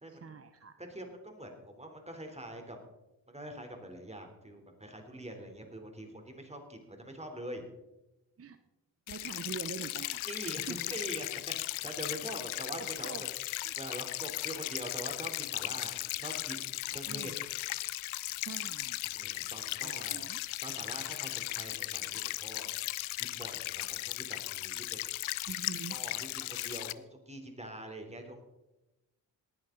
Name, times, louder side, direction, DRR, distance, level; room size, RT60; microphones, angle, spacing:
voice 1, 0.1-0.7 8.4-8.6 9.1-10.8 12.8-13.2 13.6-13.7 15.9-16.1 17.1-17.5 18.4-19.0 19.8-20.4 20.7-20.9 25.5-26.0, right 5 dB, 30° right, 10 dB, 0.8 m, -44 dB
voice 2, 0.9-2.8 3.3-7.6 10.2-10.6 10.9-11.3 11.6-13.1 13.8-17.3 19.1-20.2 20.6-22.7 23.2-25.0 25.9-28.4, right 1 dB, 15° right, 4 dB, 3.5 m, -44 dB
sound 1, 9.1-26.9, left 17 dB, 85° left, 0.6 m, -37 dB
18.5 x 11.0 x 3.9 m, 0.98 s
cardioid pair, 60°, 46 cm